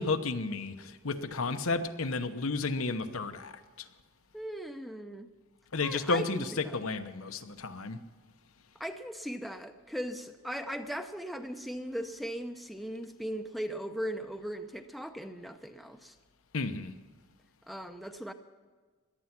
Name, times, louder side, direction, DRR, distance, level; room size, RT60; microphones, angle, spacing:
voice 1, 0.0-3.6 5.7-6.5 6.7-8.0 16.5-16.9, left 3 dB, 80° left, 1.0 m, -32 dB
voice 2, 4.3-5.3 5.8-6.8 8.8-16.1 17.7-18.3, equal, ahead, 0.6 m, -38 dB
17.5 x 12.0 x 6.0 m
head